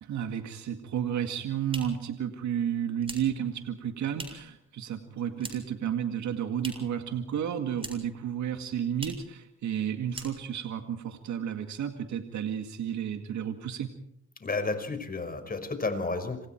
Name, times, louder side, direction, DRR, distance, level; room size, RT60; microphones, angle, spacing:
voice 1, 0.0-13.9, right 9 dB, 70° right, 6 dB, 2.1 m, -32 dB
sound 1, 1.6-4.6 4.9-5.8 6.1-7.0 7.3-8.2 8.5-8.6 8.9-9.3 9.7-9.8 10.1-10.7, right 2 dB, 20° right, 7.3 m, -44 dB
voice 2, 14.4-16.5, left 3 dB, 30° left, 8 dB, 5.3 m, -31 dB
27.5 x 26.5 x 4.6 m, 0.73 s
cardioid pair, 90°, 30 cm